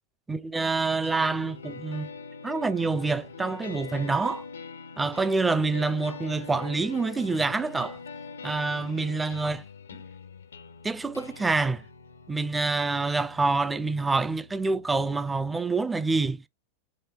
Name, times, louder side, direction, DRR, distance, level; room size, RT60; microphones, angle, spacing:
voice 1, 0.3-2.1 2.4-4.4 5.0-8.0 8.4-9.6 10.8-11.8 12.3-16.5, right 3 dB, 10° right, 0.4 m, -27 dB
sound 1, 1.0-15.0, left 5 dB, 70° left, 0.4 m, -43 dB
5.0 x 2.7 x 3.3 m
figure-of-eight pair, 90°, 0 cm